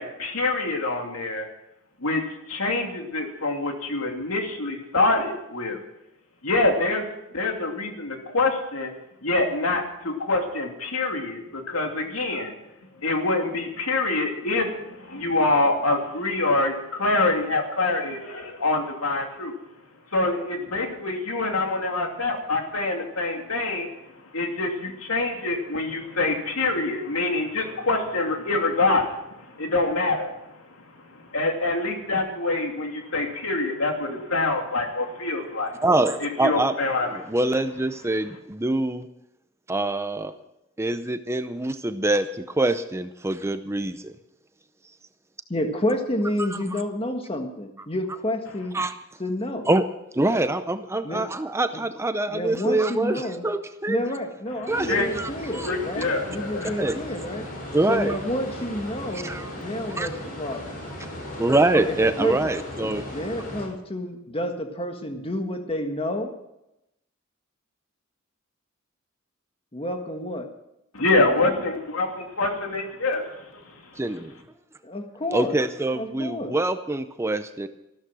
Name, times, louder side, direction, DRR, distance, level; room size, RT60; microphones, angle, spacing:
voice 1, 0.0-1.5 2.0-2.2 2.5-5.8 6.4-7.0 7.3-8.9 9.2-12.5 13.0-14.7 15.1-19.6 20.1-23.9 24.3-29.0 29.6-30.3 31.3-35.7 36.2-37.1 54.9-55.1 55.6-56.7 70.9-73.2, left 2 dB, 75° left, 2 dB, 2.8 m, -25 dB
voice 2, 35.8-36.8 37.1-39.1 39.7-40.3 40.8-44.1 46.4-46.8 48.7-48.9 49.7-49.8 50.1-54.0 54.7-55.7 56.8-57.0 57.7-58.2 59.1-59.5 59.9-60.1 61.4-63.1 74.0-74.3 75.3-77.7, right 2 dB, 15° right, 10 dB, 0.6 m, -25 dB
voice 3, 45.5-48.8 49.2-49.7 51.0-51.2 51.7-51.8 52.3-53.4 53.9-57.5 57.9-60.7 61.8-62.5 62.8-66.3 69.7-70.5 74.8-75.6 75.9-76.6, left 1 dB, 25° left, 4 dB, 1.6 m, -30 dB
sound 1, 54.7-63.7, left 1 dB, 45° left, 5.8 m, -37 dB
14.5 x 13.0 x 6.2 m, 0.88 s
head